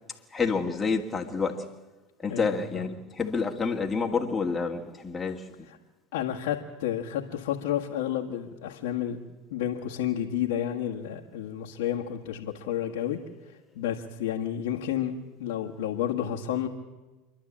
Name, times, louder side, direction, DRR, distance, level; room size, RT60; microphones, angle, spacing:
voice 1, 0.3-1.7 2.2-5.7, left 5 dB, 15° left, 2.1 m, -29 dB
voice 2, 2.3-2.8 6.1-9.2 9.5-13.2 13.7-15.1 15.4-16.7, left 10 dB, 75° left, 1.6 m, -30 dB
27.0 x 11.5 x 8.7 m
hypercardioid pair, 100°, 0 cm